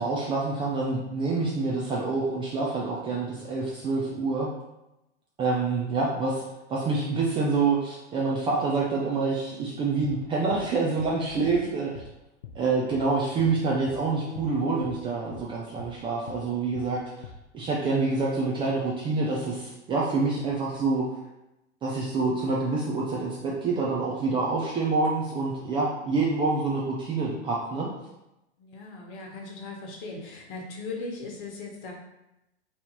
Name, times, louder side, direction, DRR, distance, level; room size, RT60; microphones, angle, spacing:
voice 1, 0.0-4.5 5.4-6.4 6.7-12.0 12.5-17.0 17.5-21.1 21.8-27.9, right 3 dB, 15° right, -4 dB, 0.4 m, -27 dB
sound 1, 10.0-10.2 10.5-10.7 11.0-11.2 11.5-11.6 11.9-12.1 12.4-12.6 12.9-13.1 13.4-13.6 13.9-14.0 14.4-14.5 14.8-15.0 15.3-15.5 15.8-16.0 16.3-16.4 16.8-16.9 17.2-17.4, left 6 dB, 75° left, 0.5 m, -43 dB
voice 2, 11.3-11.7 28.6-31.9, left 3 dB, 45° left, -1 dB, 1.1 m, -38 dB
3.2 x 2.7 x 3.9 m, 0.91 s
figure-of-eight pair, 100°, 34 cm